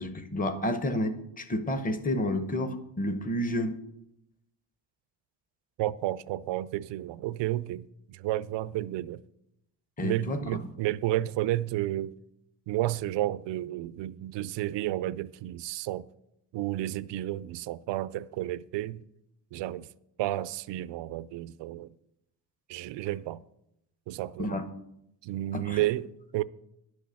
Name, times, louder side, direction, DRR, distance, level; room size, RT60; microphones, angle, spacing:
voice 1, 0.0-3.8 10.0-10.4 24.4-24.6 25.5-25.8, left 1 dB, 20° left, 0.9 m, -30 dB
voice 2, 5.8-9.2 10.0-12.2 12.7-16.1 16.5-19.0 19.5-19.9 20.2-21.9 22.7-23.4 24.1-24.6 25.2-26.1 26.3-26.4, right 15 dB, 85° right, 0.5 m, -31 dB
11.0 x 6.4 x 7.0 m
cardioid pair, 150°, 42 cm